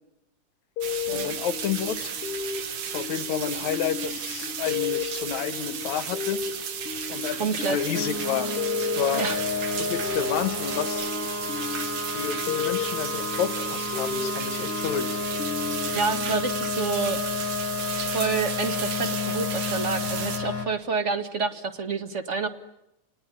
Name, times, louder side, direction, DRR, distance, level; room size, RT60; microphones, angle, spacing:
sound 1, 0.8-17.1, left 7 dB, 55° left, 2.0 m, -34 dB
sound 2, 0.8-20.4, right 7 dB, 75° right, 3.3 m, -34 dB
voice 1, 1.1-2.2 2.9-6.4 7.1-9.3 9.8-11.1 12.1-15.2, left 9 dB, 75° left, 12 dB, 2.5 m, -30 dB
voice 2, 7.4-7.8 9.1-9.4 9.7-9.8 15.9-17.2 18.0-22.5, right 4 dB, 30° right, 9 dB, 1.5 m, -28 dB
sound 3, 7.9-20.7, left 3 dB, 40° left, 3.1 m, -31 dB
30.0 x 20.0 x 9.8 m, 0.86 s
omnidirectional pair, 3.4 m